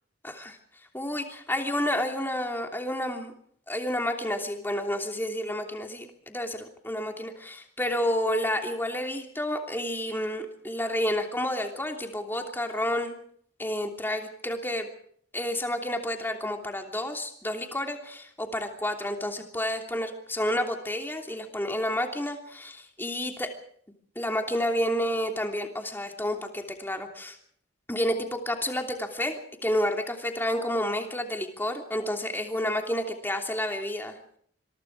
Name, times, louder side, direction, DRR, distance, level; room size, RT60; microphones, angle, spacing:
voice 1, 0.2-0.6 0.9-3.3 3.7-13.2 13.6-14.9 15.3-23.5 24.1-27.4 27.9-34.2, left 1 dB, 10° left, 3 dB, 3.0 m, -30 dB
26.0 x 23.0 x 4.8 m, 0.63 s
head